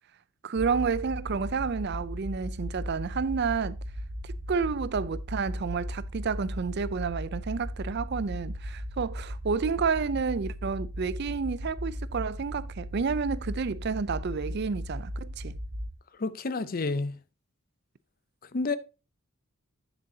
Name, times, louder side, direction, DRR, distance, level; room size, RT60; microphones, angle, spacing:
voice 1, 0.4-3.8 4.2-15.6, right 5 dB, 50° right, 0.4 m, -30 dB
sound 1, 0.6-15.9, equal, 75° right, 1.6 m, -37 dB
voice 2, 16.2-17.2 18.5-18.8, left 3 dB, 45° left, 0.6 m, -29 dB
9.6 x 7.3 x 2.7 m
head